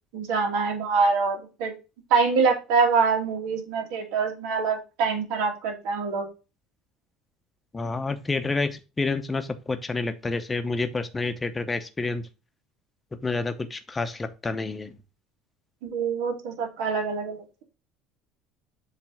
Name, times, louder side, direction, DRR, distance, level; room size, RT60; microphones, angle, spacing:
voice 1, 0.1-1.7 2.1-6.3 15.8-17.6, right 5 dB, 80° right, 2 dB, 2.2 m, -25 dB
voice 2, 7.7-12.2 13.2-14.9, left 3 dB, 15° left, 8 dB, 0.8 m, -29 dB
7.4 x 3.4 x 4.6 m, 0.30 s
cardioid pair, 145°, 0 cm